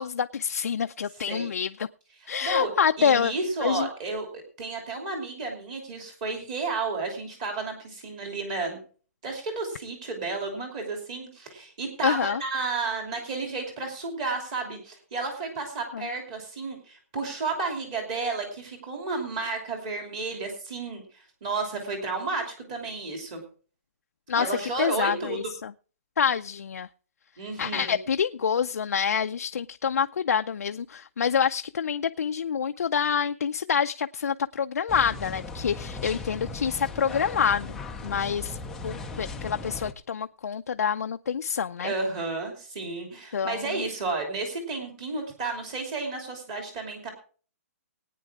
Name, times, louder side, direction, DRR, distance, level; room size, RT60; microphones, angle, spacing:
voice 1, 0.0-1.7 2.3-3.3 3.6-3.9 12.0-12.4 15.9-16.1 24.3-24.5 24.8-25.7 26.2-26.9 27.6-37.8 38.0-38.6 38.8-41.9 43.3-43.6, left 7 dB, 90° left, 0.5 m, -27 dB
voice 2, 2.2-2.7 3.0-4.3 4.6-8.8 9.2-23.4 24.4-25.5 27.4-28.0 41.8-47.1, right 3 dB, 25° right, 2.9 m, -32 dB
sound 1, 34.9-39.9, left 3 dB, 5° left, 0.5 m, -37 dB
19.5 x 9.2 x 3.6 m
hypercardioid pair, 175°, 8 cm